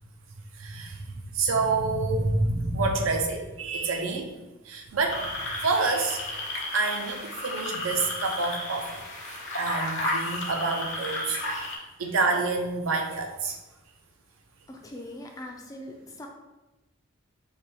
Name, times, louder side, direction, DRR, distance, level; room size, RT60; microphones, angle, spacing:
voice 1, 0.5-4.3 4.6-5.3 5.6-6.2 6.7-9.0 9.3-11.7 12.0-13.6, right 3 dB, 70° right, 3 dB, 0.5 m, -28 dB
sound 1, 5.1-11.8, left 1 dB, 60° left, 0.8 m, -33 dB
voice 2, 14.7-16.3, left 1 dB, 15° left, 2 dB, 0.3 m, -41 dB
3.3 x 2.2 x 4.3 m, 1.1 s
head